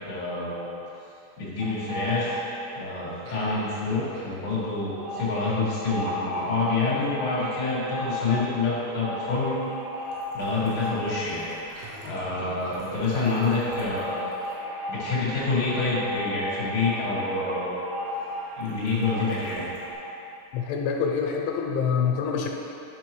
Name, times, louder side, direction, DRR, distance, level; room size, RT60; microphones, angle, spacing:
voice 1, 0.1-0.7 1.4-2.4 2.7-9.5 10.3-11.4 12.0-14.3 14.9-17.7 18.6-19.6, left 3 dB, 65° left, -9 dB, 1.2 m, -27 dB
sound 1, 1.6-2.8 3.1-19.9, left 1 dB, 80° right, 3.7 m, -36 dB
voice 2, 20.5-22.5, left 6 dB, 80° left, 1 dB, 2.9 m, -26 dB
11.0 x 6.0 x 3.1 m, 2.8 s
omnidirectional pair, 5.4 m